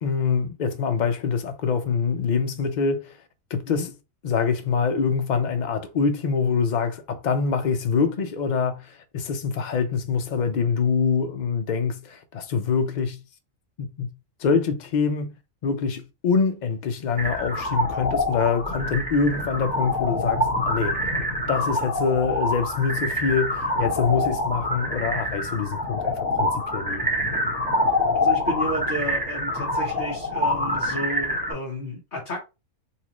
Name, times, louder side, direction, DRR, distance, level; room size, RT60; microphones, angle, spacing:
voice 1, 0.0-3.2 3.5-3.9 4.2-13.2 13.8-14.1 14.4-15.3 15.6-21.0 21.5-27.0, left 5 dB, 55° left, 0.5 m, -25 dB
sound 1, 17.2-31.5, left 1 dB, 5° right, 1.1 m, -26 dB
voice 2, 28.1-32.4, left 1 dB, 40° left, 1.3 m, -32 dB
4.1 x 2.5 x 2.9 m
omnidirectional pair, 1.5 m